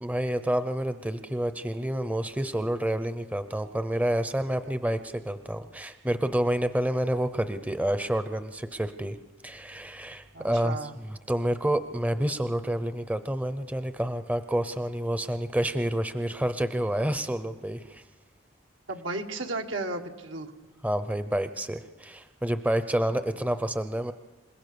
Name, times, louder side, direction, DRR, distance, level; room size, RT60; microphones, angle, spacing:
voice 1, 0.0-9.2 9.4-18.0 20.8-24.1, right 1 dB, 10° right, 11 dB, 0.6 m, -29 dB
voice 2, 10.3-10.9 18.9-20.5, right 2 dB, 85° right, 4 dB, 1.7 m, -34 dB
27.5 x 16.5 x 6.9 m, 1.2 s
head